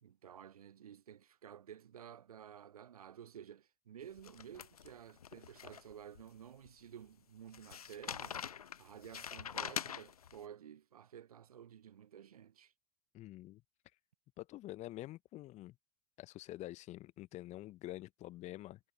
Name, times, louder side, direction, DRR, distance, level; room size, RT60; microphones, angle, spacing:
voice 1, 0.0-12.7, right 9 dB, 80° right, 0.5 m, -53 dB
sound 1, 4.2-6.2 6.6-6.7 7.5-10.4, left 8 dB, 80° left, 0.5 m, -44 dB
voice 2, 13.1-13.6 14.4-15.8 16.2-18.8, left 16 dB, 40° left, 1.0 m, -47 dB
figure-of-eight pair, 85°, 19 cm